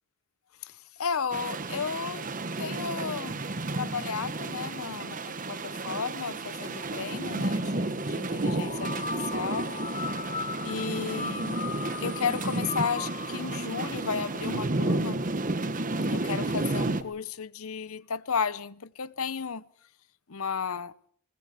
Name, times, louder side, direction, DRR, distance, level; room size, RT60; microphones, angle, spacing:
voice 1, 0.6-2.3 2.6-3.4 3.7-8.9 9.3-9.7 10.6-11.6 12.0-15.3 16.1-19.6 20.3-20.9, left 6 dB, 70° left, 0.8 m, -33 dB
sound 1, 1.3-17.0, right 2 dB, 35° right, 1.2 m, -32 dB
sound 2, 8.4-15.2, left 4 dB, 30° left, 1.3 m, -38 dB
21.5 x 20.0 x 6.6 m
head